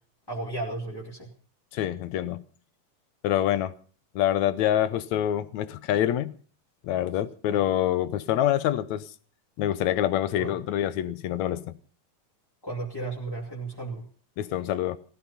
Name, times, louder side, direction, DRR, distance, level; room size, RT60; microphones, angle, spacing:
voice 1, 0.3-1.3 7.5-7.6 10.3-10.6 12.6-14.1, right 2 dB, 10° left, 2.3 m, -34 dB
voice 2, 1.7-2.4 3.2-3.7 4.2-6.4 6.8-9.1 9.6-11.7 14.4-15.0, left 12 dB, 75° left, 2.2 m, -26 dB
18.0 x 14.5 x 5.6 m
omnidirectional pair, 3.4 m